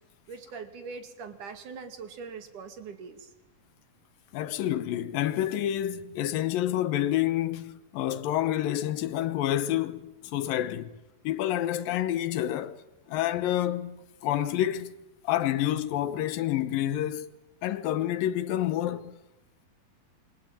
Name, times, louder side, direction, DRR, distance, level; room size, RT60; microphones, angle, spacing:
voice 1, 0.3-3.3, right 5 dB, 60° right, 3.6 m, -42 dB
voice 2, 4.3-10.9 11.2-12.8 13.1-15.0 15.2-17.3 17.6-19.2, left 12 dB, 75° left, 2.8 m, -28 dB
28.0 x 23.5 x 9.0 m
omnidirectional pair, 4.2 m